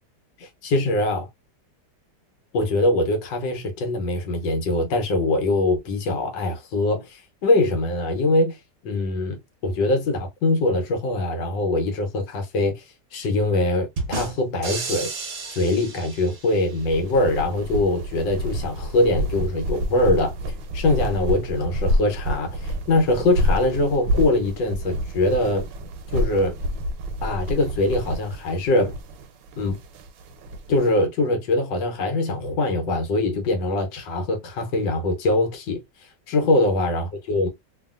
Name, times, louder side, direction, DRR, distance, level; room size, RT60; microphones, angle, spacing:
voice 1, 0.4-1.3 2.5-8.6 8.8-12.9 13.1-15.1 15.5-20.3 20.7-25.6 26.1-26.5 27.2-29.0 29.6-29.8 30.7-35.8 36.3-37.5, left 2 dB, 85° left, 1.5 m, -23 dB
sound 1, 14.0-16.8, right 4 dB, 50° right, 0.8 m, -32 dB
sound 2, 16.7-30.9, equal, 90° right, 1.3 m, -28 dB
2.8 x 2.7 x 2.3 m
omnidirectional pair, 1.9 m